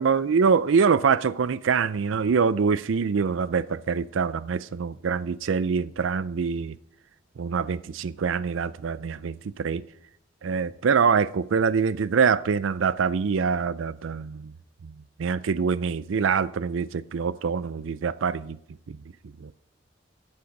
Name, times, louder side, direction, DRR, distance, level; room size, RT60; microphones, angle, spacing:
voice 1, 0.0-6.8 7.4-9.8 10.4-14.5 14.8-14.9 15.2-18.6 18.9-19.0 19.4-19.5, right 5 dB, 80° right, 0.4 m, -24 dB
14.0 x 8.6 x 5.2 m
head